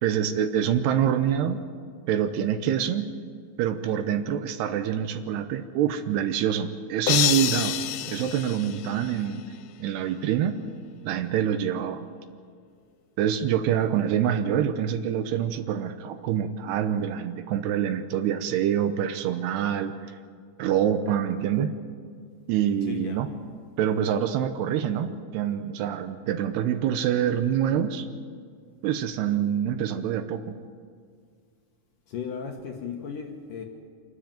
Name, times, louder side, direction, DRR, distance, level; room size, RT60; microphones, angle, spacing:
voice 1, 0.0-1.6 2.1-3.1 3.6-7.8 8.1-9.4 9.8-10.6 11.0-12.1 13.2-19.9 20.6-21.7 22.5-23.3 23.8-28.1 28.8-30.6, right 9 dB, 80° right, 9 dB, 2.9 m, -26 dB
sound 1, 7.1-9.4, left 14 dB, 80° left, 2.2 m, -27 dB
voice 2, 22.9-23.2 32.1-33.7, left 6 dB, 65° left, 3 dB, 2.4 m, -35 dB
25.5 x 13.0 x 9.1 m, 2.1 s
omnidirectional pair, 5.0 m